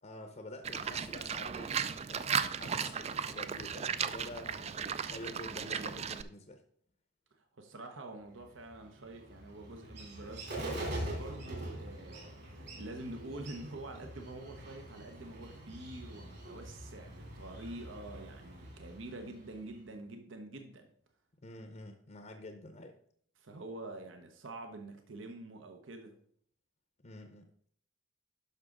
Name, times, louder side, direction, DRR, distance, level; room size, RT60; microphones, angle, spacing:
voice 1, 0.0-1.7 2.1-4.7 5.0-6.6 21.4-23.0 27.0-27.5, left 1 dB, 35° left, 5 dB, 0.7 m, -48 dB
Livestock farm animals working animals, 0.6-6.2, right 7 dB, 30° right, 0.3 m, -36 dB
voice 2, 7.3-20.9 23.4-26.2, right 2 dB, 70° right, 5 dB, 0.9 m, -47 dB
Bird, 8.4-19.9, right 1 dB, 55° right, 3.2 m, -44 dB
11.0 x 6.0 x 3.8 m, 0.63 s
head